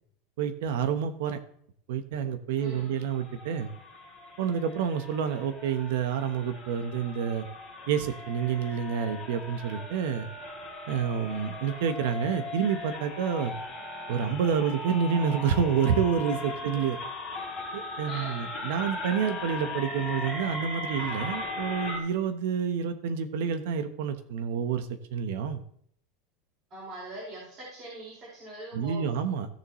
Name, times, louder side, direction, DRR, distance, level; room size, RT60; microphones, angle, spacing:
voice 1, 0.4-1.4 1.9-3.7 4.4-7.5 7.9-10.3 10.9-13.6 14.1-17.0 17.7-25.6 28.7-29.5, right 7 dB, 70° right, 8 dB, 1.0 m, -28 dB
sound 1, 2.6-22.0, left 2 dB, 5° left, 3.2 m, -38 dB
voice 2, 2.6-3.0 16.7-16.8 18.1-18.4 26.7-29.1, right 2 dB, 30° right, -7 dB, 4.9 m, -42 dB
16.0 x 7.0 x 3.1 m, 0.66 s
supercardioid pair, 165°, 0 cm